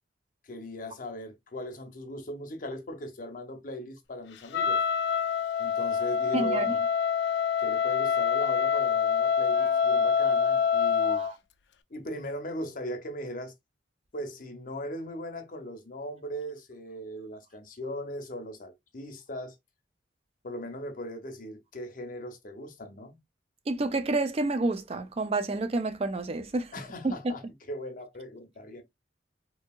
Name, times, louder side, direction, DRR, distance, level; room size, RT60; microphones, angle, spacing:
voice 1, 0.4-4.8 5.6-6.8 7.6-11.3 11.9-13.5 14.1-19.6 20.4-23.2 26.7-28.8, equal, 50° left, 0.7 m, -39 dB
Wind instrument woodwind instrument, 4.5-11.3, left 7 dB, 70° left, 0.3 m, -26 dB
voice 2, 6.3-6.7 11.1-11.3 23.7-26.7 27.0-27.1, right 2 dB, 35° right, 0.4 m, -29 dB
2.7 x 2.7 x 2.3 m
head